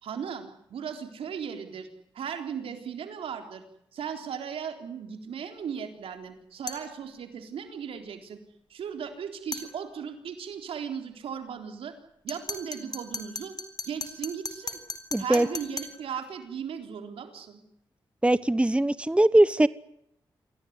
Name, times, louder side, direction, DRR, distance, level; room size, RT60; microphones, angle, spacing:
voice 1, 0.0-1.9 2.1-3.6 3.9-8.4 8.7-11.9 12.2-13.5 13.9-14.8 15.2-17.6, right 7 dB, 85° right, 6 dB, 3.9 m, -37 dB
sound 1, 6.7-6.9 9.5-9.7 12.3-16.0, left 2 dB, 45° left, 4.0 m, -37 dB
voice 2, 15.1-15.5 18.2-19.7, right 1 dB, 10° right, 17 dB, 1.0 m, -21 dB
27.0 x 17.5 x 9.7 m, 0.76 s
cardioid pair, 55°, 9 cm